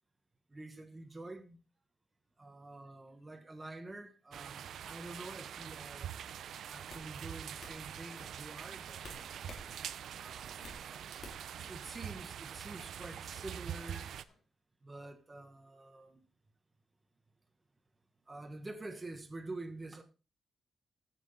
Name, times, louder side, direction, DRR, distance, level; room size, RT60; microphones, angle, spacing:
voice 1, 0.5-1.6 2.4-6.1 6.7-9.4 10.2-11.1 11.6-14.1 14.8-16.2 18.3-20.0, right 2 dB, 20° right, 1.2 m, -47 dB
sound 1, 4.3-14.2, right 9 dB, 80° right, 0.5 m, -44 dB
sound 2, 6.1-6.3 6.9-7.1 7.6-7.8 9.0-9.7 10.0-10.8 11.2-11.6, left 3 dB, 55° left, 3.3 m, -50 dB
sound 3, 8.2-10.3 10.6-10.8 11.0-11.2 11.5-11.7 12.0-12.2 12.5-13.2 13.5-14.4, left 2 dB, 70° left, 4.5 m, -63 dB
14.5 x 5.9 x 4.1 m
wide cardioid pair, 150°, 0 cm